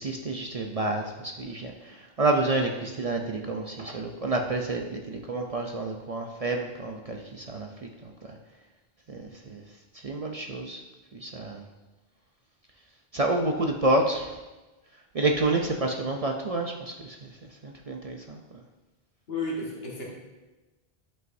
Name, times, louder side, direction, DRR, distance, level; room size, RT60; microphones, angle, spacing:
voice 1, 0.0-7.7 9.1-9.6 10.0-10.8 11.1-11.6 13.1-14.3 15.1-17.2 17.6-18.4, right 2 dB, 45° right, 2 dB, 0.5 m, -29 dB
voice 2, 19.3-20.0, left 2 dB, 70° left, -2 dB, 1.7 m, -32 dB
11.0 x 5.4 x 2.6 m, 1.1 s
omnidirectional pair, 1.0 m